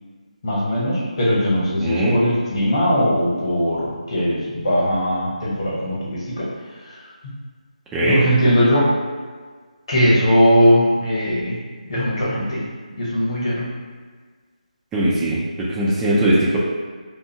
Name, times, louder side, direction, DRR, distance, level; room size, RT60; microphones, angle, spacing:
voice 1, 0.4-6.5 6.9-7.0 8.0-8.9 9.9-11.5 11.9-12.6 13.0-13.6, equal, 45° left, -7 dB, 1.0 m, -19 dB
voice 2, 1.8-2.2 7.9-8.2 14.9-15.4 15.7-16.6, right 1 dB, 5° right, -7 dB, 0.3 m, -19 dB
2.6 x 2.3 x 2.7 m, 1.5 s
figure-of-eight pair, 160°, 4 cm